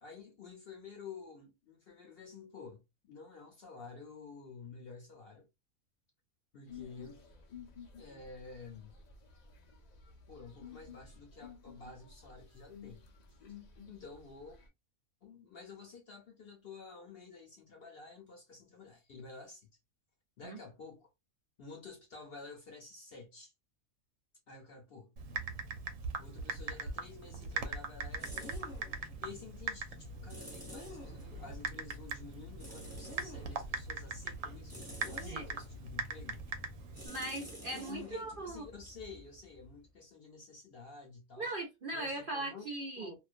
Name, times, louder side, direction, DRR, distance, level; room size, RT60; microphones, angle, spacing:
voice 1, 0.0-5.5 6.5-7.3 8.0-8.9 10.3-13.0 13.3-13.4 13.9-14.6 15.2-19.7 20.4-21.1 21.6-23.5 24.5-25.1 26.2-28.6 28.9-36.4 37.6-41.5 41.9-42.6 43.0-43.1, left 4 dB, 55° left, 0.7 m, -51 dB
sound 1, 6.7-14.7, left 6 dB, 85° left, 0.3 m, -53 dB
Typing, 25.2-37.1, right 4 dB, 75° right, 0.9 m, -41 dB
sound 2, 27.3-39.9, equal, 10° right, 0.9 m, -51 dB
voice 2, 37.0-38.6 41.4-43.1, right 2 dB, 60° right, 0.6 m, -39 dB
2.4 x 2.2 x 2.4 m
omnidirectional pair, 1.5 m